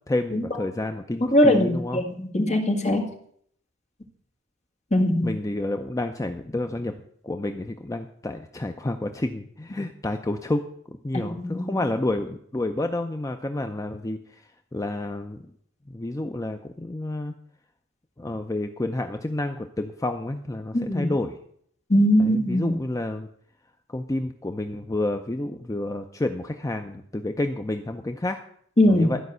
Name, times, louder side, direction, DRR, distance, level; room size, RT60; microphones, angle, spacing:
voice 1, 0.1-2.0 5.2-6.9 7.2-14.2 14.7-15.4 15.9-17.3 18.2-21.3 22.2-23.3 23.9-28.4 28.9-29.2, left 2 dB, 15° left, 6 dB, 0.5 m, -29 dB
voice 2, 1.2-3.1 4.9-5.4 11.1-11.8 20.7-21.1 21.9-22.8 28.8-29.1, left 1 dB, 35° left, 3 dB, 1.9 m, -21 dB
13.5 x 5.3 x 8.0 m, 0.65 s
head